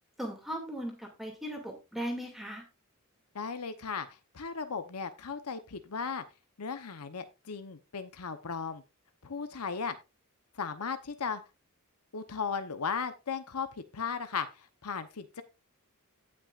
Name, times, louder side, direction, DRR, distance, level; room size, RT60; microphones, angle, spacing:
voice 1, 0.2-2.6, equal, ahead, 1 dB, 2.4 m, -38 dB
voice 2, 3.3-4.1 4.3-6.2 6.6-8.8 9.2-10.0 10.6-11.4 12.1-13.7 13.9-15.4, left 5 dB, 90° left, 10 dB, 0.9 m, -36 dB
17.0 x 6.1 x 2.5 m, 0.26 s
head